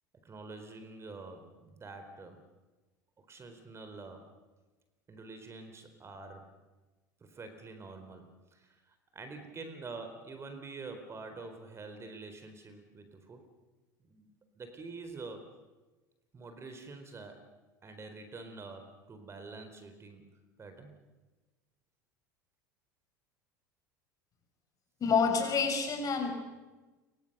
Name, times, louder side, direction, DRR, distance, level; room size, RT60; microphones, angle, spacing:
voice 1, 0.2-2.4 3.2-4.3 5.1-6.5 7.2-13.4 14.0-15.5 16.3-17.5 17.8-20.2 20.6-20.9, right 3 dB, 25° right, 8 dB, 4.3 m, -47 dB
voice 2, 25.0-26.3, left 5 dB, 35° left, 4 dB, 6.8 m, -28 dB
28.5 x 24.0 x 6.9 m, 1.2 s
hypercardioid pair, 75°, 10 cm